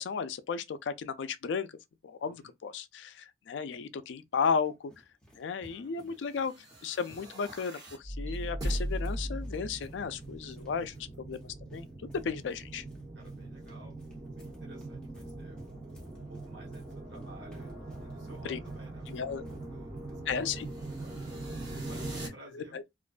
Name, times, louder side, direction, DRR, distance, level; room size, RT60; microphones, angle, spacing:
voice 1, 0.0-1.7 2.0-4.9 5.4-6.5 6.8-12.8 18.4-18.6 19.1-19.4 20.3-20.7 22.5-22.8, left 6 dB, 75° left, 0.4 m, -34 dB
voice 2, 2.2-2.5 5.7-6.2 6.5-6.7 10.4-11.0 13.1-15.6 16.1-20.6 21.0-21.2 21.8-22.8, right 1 dB, 85° right, 1.1 m, -55 dB
sound 1, 4.0-20.1, equal, 5° left, 0.8 m, -58 dB
sound 2, 6.5-22.3, right 1 dB, 20° right, 1.0 m, -40 dB
2.4 x 2.2 x 2.3 m
head